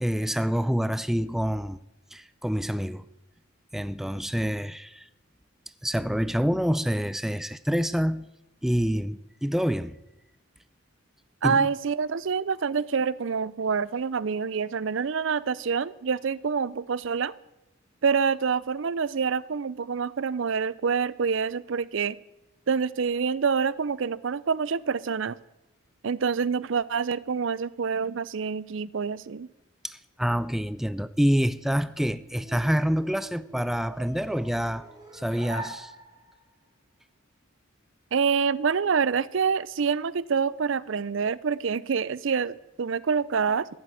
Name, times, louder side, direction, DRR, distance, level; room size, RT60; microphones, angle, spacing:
voice 1, 0.0-1.8 2.1-3.1 3.7-5.1 5.8-8.3 8.6-10.0 11.4-11.7 29.8-34.9 35.1-35.9, equal, ahead, 0.4 m, -27 dB
voice 2, 11.4-17.3 18.0-22.2 22.7-25.4 26.0-29.5 38.1-43.7, right 6 dB, 60° right, 0.5 m, -26 dB
sound 1, 31.6-36.5, right 2 dB, 20° right, 3.2 m, -43 dB
15.0 x 7.7 x 9.0 m
head